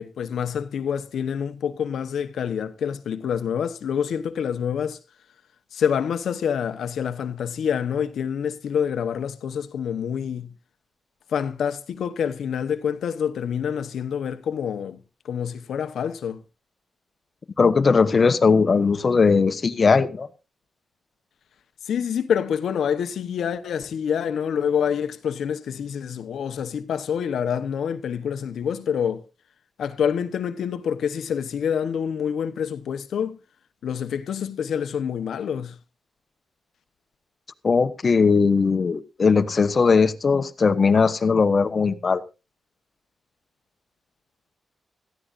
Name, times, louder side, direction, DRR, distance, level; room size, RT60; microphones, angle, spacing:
voice 1, 0.0-5.0 5.7-10.5 11.3-16.4 21.8-29.2 29.8-33.4 33.8-35.8, left 8 dB, 80° left, 1.0 m, -27 dB
voice 2, 17.6-20.3 37.6-42.2, left 5 dB, 45° left, 1.1 m, -19 dB
17.5 x 13.5 x 2.6 m
cardioid pair, 90°, 0 cm